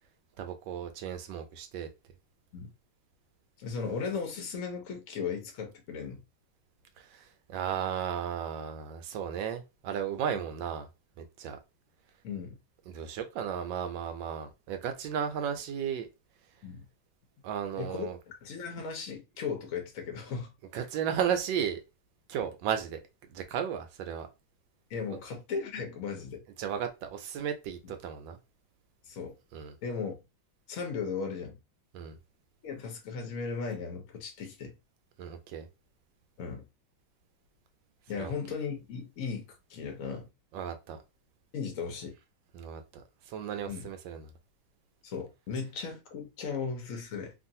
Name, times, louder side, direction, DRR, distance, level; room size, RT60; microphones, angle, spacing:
voice 1, 0.4-1.9 7.0-10.9 11.2-11.6 12.9-16.1 17.4-18.2 20.7-21.8 22.3-23.0 23.3-24.3 26.6-28.4 29.5-29.8 31.9-32.2 35.2-35.7 38.2-38.3 40.5-41.0 42.5-44.3, right 8 dB, 75° right, 1.2 m, -34 dB
voice 2, 3.6-6.2 10.3-10.4 12.2-12.5 16.6-16.8 17.8-20.5 24.9-26.4 27.8-27.9 29.1-29.3 29.8-30.2 30.7-31.6 32.6-34.7 36.4-36.6 38.1-39.4 39.7-40.3 41.5-42.1 43.7-43.9 45.0-47.3, left 5 dB, 60° left, 0.9 m, -36 dB
3.1 x 2.5 x 2.6 m
omnidirectional pair, 2.2 m